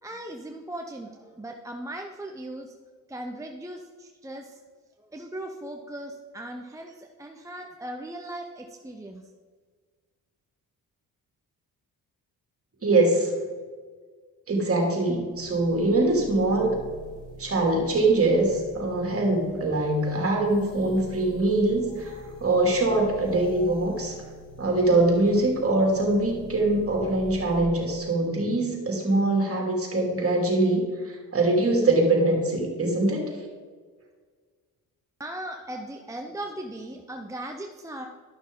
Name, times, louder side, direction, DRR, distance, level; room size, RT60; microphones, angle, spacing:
voice 1, 0.0-2.7 3.1-4.6 5.0-9.3 35.2-38.1, right 1 dB, 10° right, 2 dB, 0.7 m, -38 dB
voice 2, 12.8-13.3 14.5-16.8 17.4-22.1 22.4-24.1 24.6-33.3, right 2 dB, 40° right, 1 dB, 2.7 m, -23 dB
sound 1, 15.3-27.6, left 2 dB, 85° left, 2.3 m, -44 dB
11.5 x 6.1 x 3.8 m, 1.5 s
cardioid pair, 75°, 37 cm